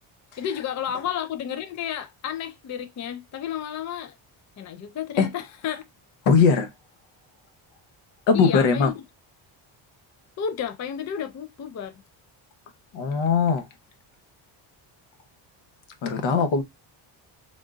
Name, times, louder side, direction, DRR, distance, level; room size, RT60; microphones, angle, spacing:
voice 1, 0.4-4.2 4.6-5.8 8.3-9.0 10.4-12.0, left 9 dB, 40° left, 0.4 m, -32 dB
voice 2, 6.3-6.7 8.3-8.9 12.9-13.7 16.0-16.6, left 5 dB, 65° left, 1.0 m, -20 dB
3.5 x 2.5 x 3.8 m
cardioid pair, 135°, 48 cm